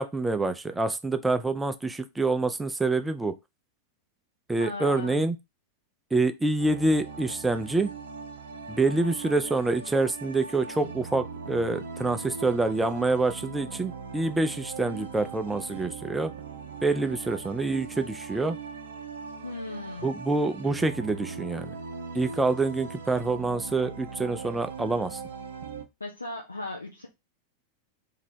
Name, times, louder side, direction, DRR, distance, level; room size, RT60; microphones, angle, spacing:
voice 1, 0.0-3.3 4.5-5.4 6.1-7.9 8.7-16.3 16.8-18.6 20.0-21.8 22.1-25.2, right 3 dB, 10° right, 0.5 m, -26 dB
voice 2, 4.6-5.3 19.4-20.1 26.0-27.1, left 2 dB, 80° left, 0.7 m, -37 dB
sound 1, 6.6-25.9, right 5 dB, 70° right, 0.5 m, -40 dB
3.0 x 2.8 x 4.3 m
figure-of-eight pair, 90°, 0 cm